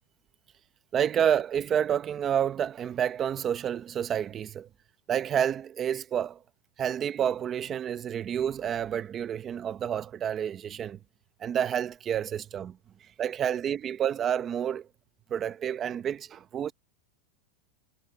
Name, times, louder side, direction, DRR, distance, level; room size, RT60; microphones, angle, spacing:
voice 1, 0.9-4.7 5.1-6.4 6.8-11.0 11.4-12.8 13.2-14.9 15.3-16.7, right 9 dB, 20° right, 0.8 m, -29 dB
supercardioid pair, 170°, 0 cm